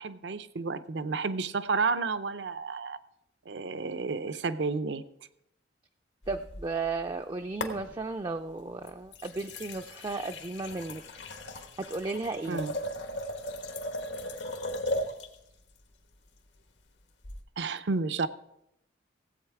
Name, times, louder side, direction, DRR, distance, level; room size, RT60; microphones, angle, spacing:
voice 1, 0.0-3.0 3.5-5.0 12.5-12.7 17.6-18.3, right 4 dB, 70° right, 13 dB, 0.6 m, -31 dB
sound 1, 6.2-7.2 7.6-8.3 8.8-15.4 17.2-17.4, left 1 dB, 80° left, 1.3 m, -37 dB
voice 2, 6.3-11.0 11.6-12.6, right 3 dB, 25° right, 5 dB, 0.3 m, -34 dB
16.5 x 8.0 x 4.7 m, 0.82 s
head